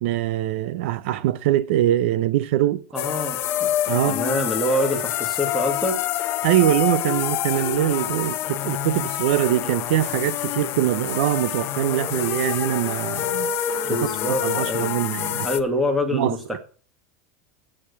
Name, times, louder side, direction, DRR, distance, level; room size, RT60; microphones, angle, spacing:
voice 1, 0.0-2.8 3.9-4.2 6.4-13.5 14.4-15.5 16.1-16.6, right 13 dB, 60° right, 0.6 m, -23 dB
voice 2, 2.9-3.7 4.0-6.0 13.8-15.0 15.4-16.6, left 1 dB, ahead, 2.0 m, -25 dB
sound 1, 3.0-15.6, left 12 dB, 35° left, 0.8 m, -27 dB
8.8 x 7.3 x 8.2 m
supercardioid pair, 170°, 7 cm